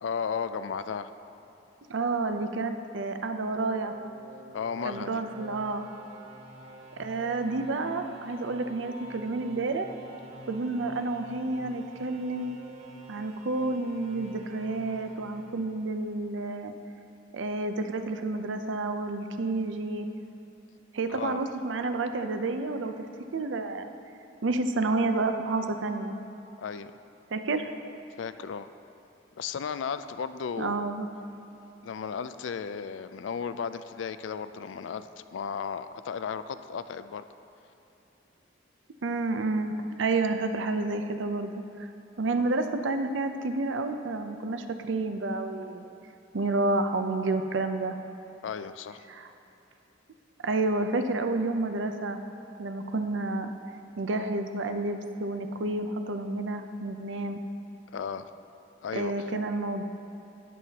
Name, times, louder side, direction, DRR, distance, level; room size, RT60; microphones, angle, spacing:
voice 1, 0.0-1.1 4.5-5.2 21.1-21.4 26.6-26.9 28.2-28.7 29.3-30.9 31.8-37.2 48.4-49.0 57.9-58.3 58.8-59.3, left 6 dB, 75° left, 12 dB, 0.4 m, -35 dB
voice 2, 1.9-4.0 4.8-5.9 7.0-9.9 10.5-12.6 13.1-16.7 17.3-20.1 20.9-22.9 23.3-23.9 24.4-26.1 27.3-27.7 30.6-31.1 39.0-39.7 40.0-41.9 42.2-45.9 46.3-47.9 49.1-49.3 50.4-52.2 52.6-53.5 54.0-57.4 58.9-59.8, right 3 dB, 75° right, 7 dB, 0.6 m, -30 dB
sound 1, 3.2-16.2, right 1 dB, 35° right, 0.9 m, -48 dB
12.5 x 9.1 x 2.9 m, 3.0 s
head